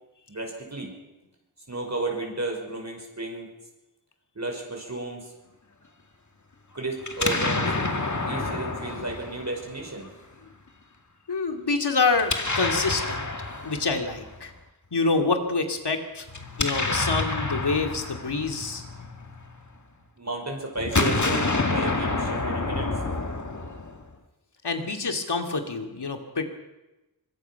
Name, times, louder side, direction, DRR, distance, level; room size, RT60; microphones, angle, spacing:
voice 1, 0.3-0.9 1.7-3.5 4.4-5.3 6.7-7.7 8.3-10.1 20.2-22.9, right 2 dB, 40° right, 0 dB, 5.6 m, -33 dB
Explosion, 7.0-10.1 12.1-14.4 16.3-19.7 20.8-24.1, left 3 dB, 45° left, 2.2 m, -28 dB
voice 2, 11.3-13.3 13.6-14.5 14.9-16.3 16.6-18.8 24.6-26.4, left 4 dB, 80° left, 4 dB, 2.7 m, -26 dB
25.0 x 22.5 x 5.9 m, 1.0 s
wide cardioid pair, 75°, 40 cm